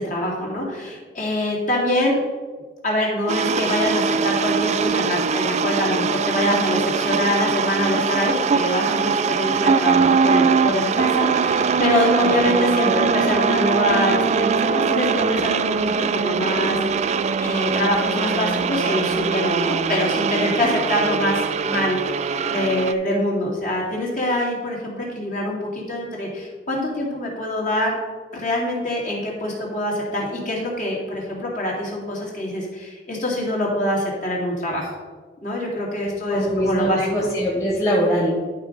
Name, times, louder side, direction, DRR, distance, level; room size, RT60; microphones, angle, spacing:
voice 1, 0.0-2.2 2.8-17.1 17.4-28.0 28.3-34.9 35.4-37.0, left 1 dB, 45° left, -3 dB, 2.3 m, -24 dB
sound 1, 3.3-22.9, right 5 dB, 40° right, 0.3 m, -22 dB
voice 2, 12.2-13.1 36.0-38.3, equal, 15° left, -5 dB, 1.7 m, -23 dB
11.5 x 3.8 x 5.2 m, 1.4 s
head